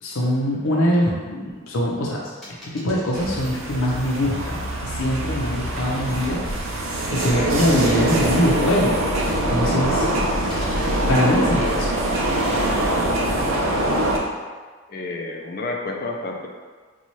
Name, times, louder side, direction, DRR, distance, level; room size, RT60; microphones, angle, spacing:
voice 1, 0.0-2.3 2.6-6.4 7.1-9.1 9.5-10.1 11.1-11.9, equal, 85° left, -3 dB, 0.6 m, -22 dB
sound 1, 2.4-3.5 4.5-4.6 6.1-7.2 7.6-8.4 9.5-10.1 10.5-11.1, equal, ahead, 0.9 m, -41 dB
sound 2, 3.1-14.2, right 1 dB, 75° right, 0.5 m, -23 dB
voice 2, 14.9-16.5, left 2 dB, 45° left, 1 dB, 0.4 m, -30 dB
4.1 x 2.3 x 3.0 m, 1.5 s
head